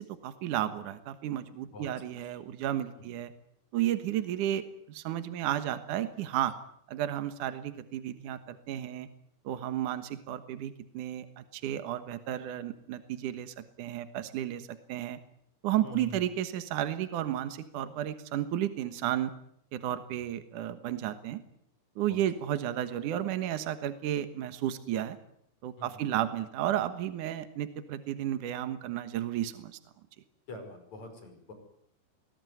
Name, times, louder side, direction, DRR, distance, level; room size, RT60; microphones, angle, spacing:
voice 1, 0.0-3.3 3.7-4.6 4.9-6.5 6.9-9.1 9.4-15.2 15.6-19.3 19.7-21.4 22.0-25.2 25.6-29.8, right 12 dB, 75° right, 10 dB, 1.9 m, -33 dB
voice 2, 15.8-16.3 22.1-22.2 25.8-26.0 30.5-31.5, left 2 dB, 35° left, 6 dB, 6.4 m, -45 dB
25.0 x 20.0 x 9.4 m, 0.72 s
omnidirectional pair, 5.6 m